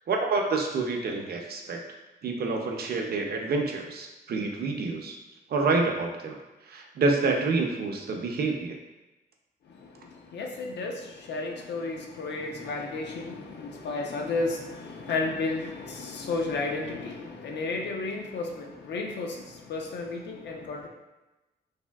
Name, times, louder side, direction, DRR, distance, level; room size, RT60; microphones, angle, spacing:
voice 1, 0.1-1.8 2.2-5.2 5.5-6.4 6.7-8.8, right 3 dB, 60° right, 2 dB, 0.4 m, -28 dB
voice 2, 9.7-20.9, left 3 dB, 80° left, 1 dB, 0.5 m, -33 dB
3.3 x 2.5 x 2.2 m, 1.1 s
wide cardioid pair, 110°, 18 cm